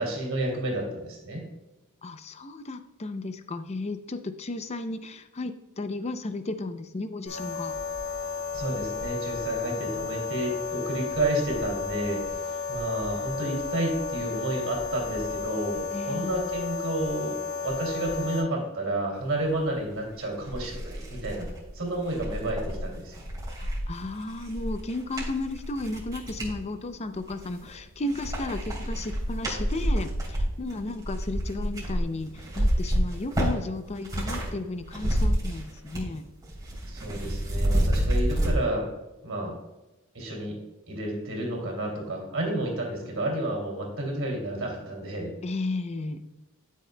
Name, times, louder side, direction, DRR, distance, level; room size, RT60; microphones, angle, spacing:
voice 1, 0.0-1.4 8.5-21.5 21.7-23.2 36.9-38.9 39.2-39.5 40.1-40.6 40.9-45.3, right 1 dB, 65° right, 0 dB, 2.6 m, -31 dB
voice 2, 2.0-7.8 15.9-16.3 23.5-36.3 45.4-46.2, left 2 dB, 30° left, 10 dB, 0.5 m, -34 dB
sound 1, 7.2-18.4, left 5 dB, 80° left, 2.8 m, -33 dB
sound 2, 19.9-20.0 20.4-26.6 27.1-27.8 28.1-34.5 34.8-36.2 36.4-38.5, equal, 20° right, 2.9 m, -29 dB
12.0 x 6.4 x 2.2 m, 1.0 s
head